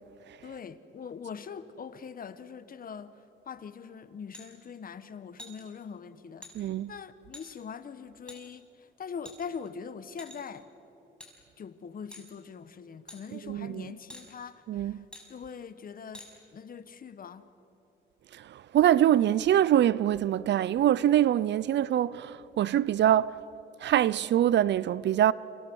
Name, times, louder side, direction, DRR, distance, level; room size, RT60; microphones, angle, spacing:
voice 1, 0.4-3.2 3.5-10.7 11.6-15.0 15.3-16.3 16.5-17.5, left 6 dB, 45° left, 1.3 m, -42 dB
sound 1, 4.3-4.5 5.4-5.6 6.4-6.5 7.3-7.5 8.3-8.4 9.2-9.7 10.2-10.6 11.2-11.3 12.1-12.3 13.1-13.2 14.1-14.3 15.1-15.3 16.1-16.3, left 1 dB, 5° left, 6.0 m, -46 dB
voice 2, 6.5-6.9 13.3-13.8 14.7-15.0 18.5-23.4 23.8-25.3, right 11 dB, 65° right, 0.6 m, -24 dB
29.5 x 26.5 x 6.4 m
cardioid pair, 90°, 20 cm